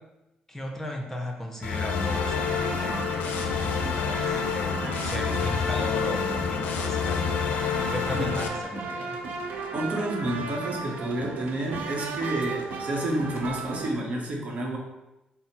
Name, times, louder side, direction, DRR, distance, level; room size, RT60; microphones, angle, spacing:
voice 1, 0.5-7.6 7.9-9.2, equal, 10° left, 1 dB, 0.7 m, -36 dB
sound 1, 1.6-8.5, left 6 dB, 80° left, 0.4 m, -28 dB
sound 2, 2.1-14.0, right 4 dB, 75° right, 0.4 m, -36 dB
voice 2, 9.7-14.8, right 1 dB, 55° right, -1 dB, 0.9 m, -30 dB
4.1 x 2.0 x 4.1 m, 0.96 s
cardioid pair, 75°, 3 cm